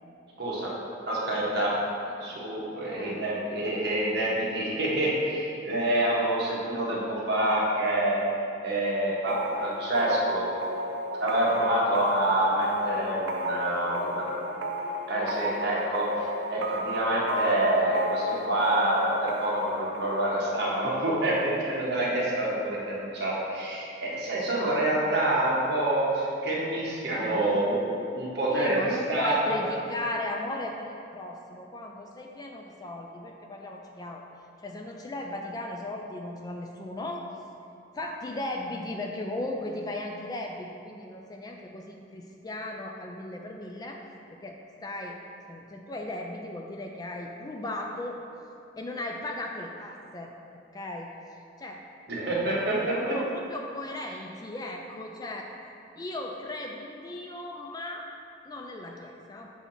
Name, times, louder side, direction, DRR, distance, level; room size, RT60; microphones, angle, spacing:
voice 1, 0.4-0.7 1.1-1.7 2.2-8.2 8.6-10.5 11.2-14.2 15.1-16.0 16.5-29.7 52.1-53.2, right 1 dB, 60° right, -6 dB, 1.4 m, -27 dB
voice 2, 2.8-3.2 13.6-15.0 27.1-27.6 28.5-34.2 34.6-37.3 37.9-44.0 44.3-45.2 45.5-48.2 48.8-51.1 51.6-51.8 52.6-55.5 56.0-58.1 58.5-59.5, left 2 dB, 20° left, 2 dB, 0.3 m, -37 dB
sound 1, 9.3-22.8, equal, 75° right, 0.6 m, -33 dB
6.9 x 2.8 x 5.7 m, 2.6 s
head